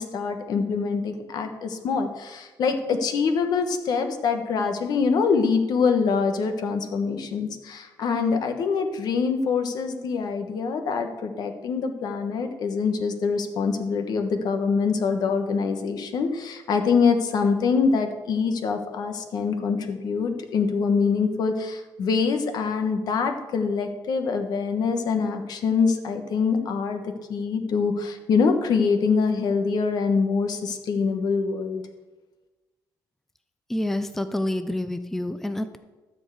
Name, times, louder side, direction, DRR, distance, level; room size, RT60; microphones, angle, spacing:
voice 1, 0.0-27.0 27.3-31.8, left 5 dB, 65° left, 6 dB, 1.3 m, -24 dB
voice 2, 33.7-35.8, left 1 dB, 5° left, 10 dB, 0.5 m, -28 dB
13.0 x 4.6 x 8.1 m, 1.2 s
cardioid pair, 125°, 7 cm